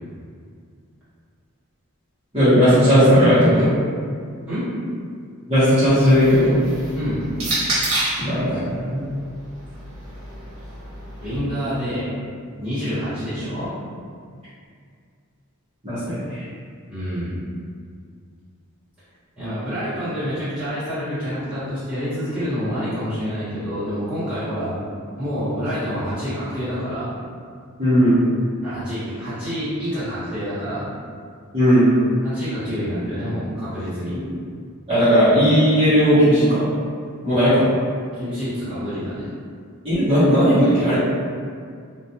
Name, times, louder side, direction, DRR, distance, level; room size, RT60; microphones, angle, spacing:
voice 1, 2.3-3.7 5.5-6.6 8.2-9.1 15.8-16.4 27.8-28.2 31.5-31.9 34.9-36.7 37.2-37.7 39.8-41.0, equal, 25° right, -17 dB, 0.9 m, -16 dB
sound 1, 5.9-8.3 9.3-11.4, right 2 dB, 80° right, 0.8 m, -28 dB
voice 2, 11.2-12.1 12.6-13.7 16.9-17.4 19.4-24.7 25.2-27.1 28.6-30.9 32.2-34.2 38.1-39.3, equal, 5° right, -16 dB, 1.2 m, -27 dB
2.4 x 2.2 x 2.8 m, 2.2 s
head